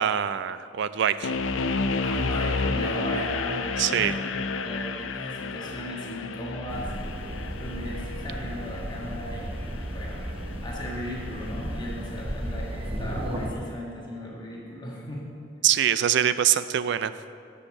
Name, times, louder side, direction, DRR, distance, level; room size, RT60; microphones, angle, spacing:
voice 1, 0.0-1.3 3.8-4.1 15.6-17.1, right 10 dB, 65° right, 13 dB, 0.4 m, -24 dB
sound 1, 1.2-12.3, left 3 dB, 90° left, 0.5 m, -32 dB
voice 2, 2.0-6.9 7.5-15.3, equal, 25° left, -4 dB, 1.4 m, -37 dB
sound 2, 6.7-13.5, equal, 30° right, 0.9 m, -34 dB
7.9 x 6.6 x 7.1 m, 2.4 s
head